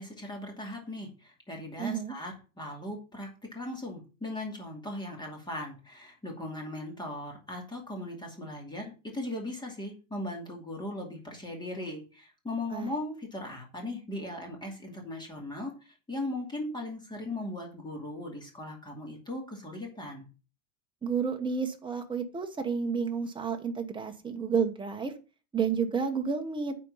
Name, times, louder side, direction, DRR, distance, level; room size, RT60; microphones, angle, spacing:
voice 1, 0.0-20.3, left 1 dB, 10° left, 1 dB, 2.5 m, -38 dB
voice 2, 1.8-2.1 12.7-12.9 21.0-25.1 25.5-26.7, right 6 dB, 10° right, 4 dB, 1.1 m, -30 dB
9.2 x 4.5 x 5.6 m, 0.33 s
supercardioid pair, 150°, 41 cm